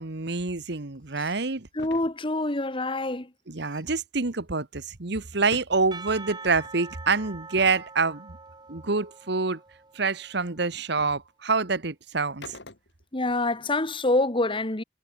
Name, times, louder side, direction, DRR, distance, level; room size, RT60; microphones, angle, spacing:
voice 1, 0.0-1.7 3.5-8.4 8.7-9.6 9.9-12.6, right 4 dB, 65° right, 1.4 m, -27 dB
sound 1, 1.8-2.1 5.3-5.8 6.6-6.8 7.6-7.9 10.3-10.4 11.0-11.2 12.4-13.1, left 2 dB, 65° left, 3.9 m, -44 dB
voice 2, 1.8-3.3 13.1-14.8, left 2 dB, 30° left, 1.7 m, -26 dB
Percussion / Church bell, 5.9-10.5, right 4 dB, 25° right, 3.1 m, -44 dB
head